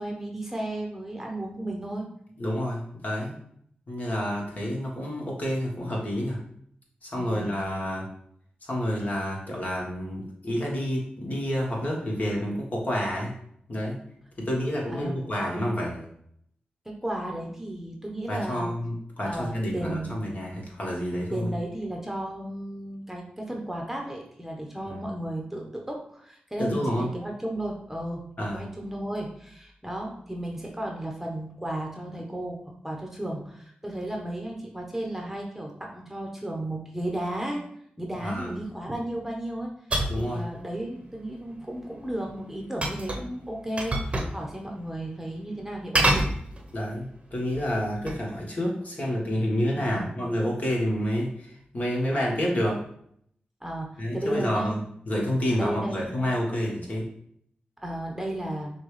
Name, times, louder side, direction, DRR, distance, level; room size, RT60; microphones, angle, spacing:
voice 1, 0.0-2.1 7.2-7.5 14.9-15.2 16.8-18.7 19.2-20.2 21.3-37.6 38.0-39.7 40.1-46.2 49.7-50.1 53.6-54.8 55.5-56.2 57.8-58.7, right 1 dB, 10° right, 0 dB, 1.0 m, -34 dB
voice 2, 2.4-3.3 3.9-6.4 7.0-8.1 8.6-13.3 13.7-14.0 14.4-16.0 18.3-21.5 24.8-25.0 26.6-27.1 28.4-28.6 38.2-38.6 40.1-40.4 46.7-52.8 54.0-54.8 55.0-57.1, equal, 45° left, -3 dB, 1.6 m, -29 dB
sound 1, 39.9-40.3 42.8-43.3 43.8-44.4 44.7-44.8 45.9-46.9 47.5-48.3, right 1 dB, 35° right, 0.9 m, -26 dB
5.9 x 2.4 x 3.3 m, 0.68 s
cardioid pair, 50°, 3 cm